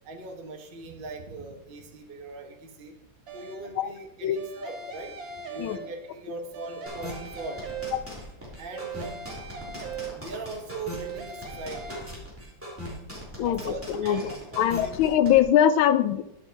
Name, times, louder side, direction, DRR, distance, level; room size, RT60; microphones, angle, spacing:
voice 1, 0.0-2.9 3.3-5.1 5.5-7.7 8.6-9.8 10.1-12.3 13.4-14.2 14.5-14.9, right 3 dB, 30° right, 2 dB, 1.2 m, -40 dB
sound 1, 3.3-3.8 4.4-6.2 6.5-8.3 8.7-10.5 10.9-12.0, right 5 dB, 70° right, 2.3 m, -40 dB
sound 2, 6.9-15.4, equal, 5° right, 3.2 m, -39 dB
voice 2, 13.4-16.2, left 10 dB, 90° left, 12 dB, 1.4 m, -22 dB
11.0 x 6.7 x 4.5 m, 0.83 s
omnidirectional pair, 2.1 m